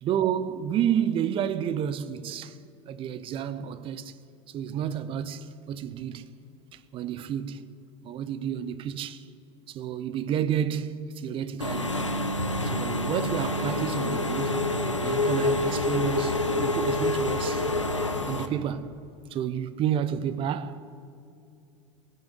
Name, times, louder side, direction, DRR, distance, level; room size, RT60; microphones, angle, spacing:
voice 1, 0.0-2.6 2.9-4.2 4.5-6.3 6.7-7.7 8.0-9.3 9.7-12.0 12.6-14.7 15.0-17.7 18.3-20.8, right 9 dB, 35° right, 0.7 m, -30 dB
Engine / Mechanisms, 11.6-18.5, left 2 dB, 90° left, 0.8 m, -27 dB
17.0 x 7.0 x 9.9 m
figure-of-eight pair, 80°, 15 cm